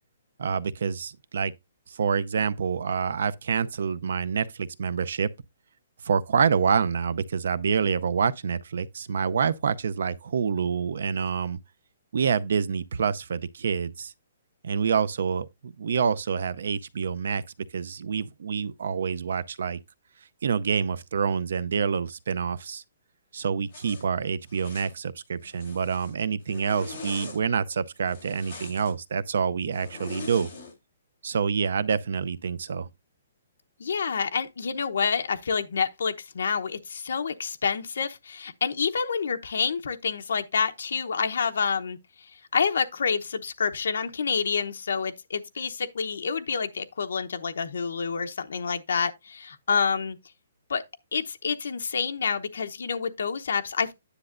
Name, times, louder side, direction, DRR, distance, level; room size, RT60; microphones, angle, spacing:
voice 1, 0.4-1.5 1.9-5.3 6.0-11.6 12.1-14.1 14.6-17.4 17.7-19.8 20.4-22.8 23.3-30.5 31.2-32.9, right 6 dB, 55° right, 0.5 m, -27 dB
Zipper (clothing), 23.7-24.0 24.5-24.9 25.4-26.1 26.5-27.4 28.0-28.9 29.7-30.7, left 3 dB, 25° left, 3.4 m, -42 dB
voice 2, 33.8-42.0 42.5-50.2 50.7-50.8 51.1-53.9, left 6 dB, 65° left, 0.8 m, -28 dB
9.9 x 6.6 x 2.5 m
hypercardioid pair, 180°, 0 cm